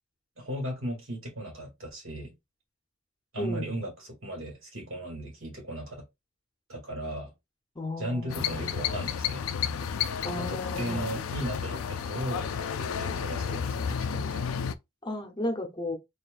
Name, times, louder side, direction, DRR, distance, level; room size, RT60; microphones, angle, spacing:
voice 1, 0.4-2.3 3.3-5.9 6.7-7.3 8.0-9.4 10.4-12.5 12.8-14.5, right 1 dB, 70° right, 2.3 m, -36 dB
voice 2, 3.4-3.7 7.8-8.8 10.2-11.0 15.0-16.0, left 1 dB, 20° left, 0.8 m, -34 dB
sound 1, 8.3-14.8, left 7 dB, 75° left, 0.4 m, -32 dB
4.4 x 3.0 x 2.4 m
head